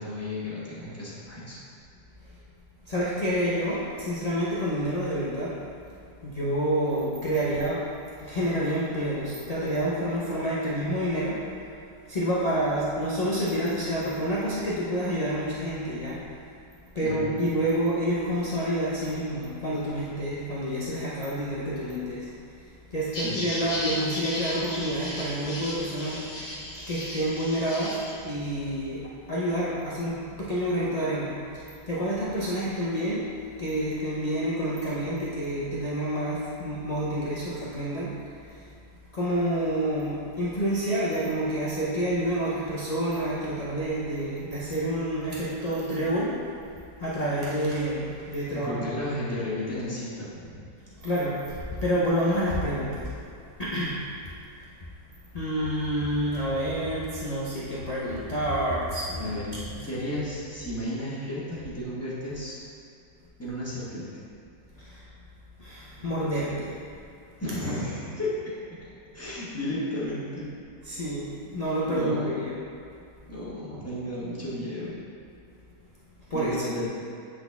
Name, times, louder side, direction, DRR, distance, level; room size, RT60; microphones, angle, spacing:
voice 1, 0.0-1.6 17.0-17.3 23.1-23.4 48.5-50.5 59.2-62.6 63.4-64.1 66.0-66.1 67.4-68.5 69.1-70.5 71.9-72.3 73.3-74.9 76.3-76.9, left 1 dB, 10° left, -9 dB, 1.1 m, -33 dB
voice 2, 2.9-5.6 6.2-7.8 8.2-11.4 12.1-16.2 16.9-22.3 22.9-26.3 26.9-28.0 28.2-33.2 33.6-38.1 39.1-46.3 47.0-48.9 51.0-53.1 53.6-54.0 55.3-59.3 59.7-59.9 64.8-65.0 65.6-66.7 70.9-72.5 76.3-76.5, equal, 80° left, -8 dB, 0.3 m, -28 dB
sound 1, 23.1-28.1, left 1 dB, 30° left, 1.2 m, -35 dB
7.8 x 4.1 x 3.5 m, 2.5 s
omnidirectional pair, 1.8 m